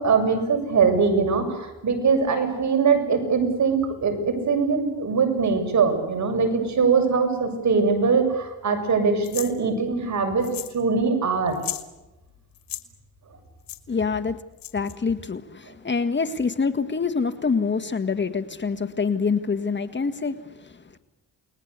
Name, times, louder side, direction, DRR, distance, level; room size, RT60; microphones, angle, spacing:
voice 1, 0.0-10.5 10.7-11.6, right 5 dB, 55° right, 5 dB, 7.5 m, -22 dB
sound 1, 9.2-9.5 10.4-10.8 11.1-11.2 11.5-11.9 12.5-12.8 13.7-13.8 14.6-14.9, left 13 dB, 90° left, 2.3 m, -34 dB
voice 2, 13.9-14.4 14.7-21.0, left 5 dB, 35° left, 9 dB, 1.8 m, -26 dB
29.5 x 20.5 x 8.4 m, 0.99 s
cardioid pair, 80°, 33 cm